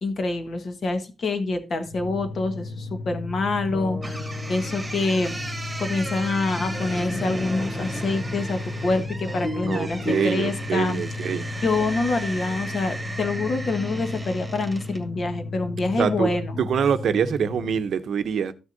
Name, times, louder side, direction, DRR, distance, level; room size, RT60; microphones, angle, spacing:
voice 1, 0.0-5.3 5.8-11.0 11.6-16.6, left 3 dB, 45° left, 1.4 m, -26 dB
sound 1, 1.8-17.9, left 3 dB, 70° left, 1.0 m, -34 dB
sound 2, 3.7-10.4, left 1 dB, 15° left, 0.8 m, -35 dB
sound 3, 4.0-15.1, right 2 dB, 10° right, 2.2 m, -36 dB
voice 2, 9.7-11.5 16.0-16.3 16.6-18.5, right 7 dB, 65° right, 0.7 m, -25 dB
14.0 x 6.3 x 2.6 m
wide cardioid pair, 145°, 0 cm